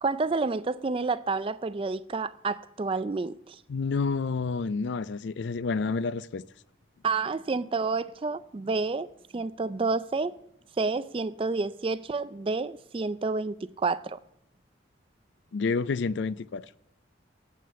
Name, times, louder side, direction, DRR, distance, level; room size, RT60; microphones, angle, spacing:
voice 1, 0.0-3.6 7.0-9.1 9.3-10.3 10.8-14.2, right 4 dB, 30° right, 0.3 m, -29 dB
voice 2, 3.7-6.4 15.5-16.7, left 4 dB, 70° left, 0.4 m, -29 dB
9.5 x 7.8 x 6.7 m
head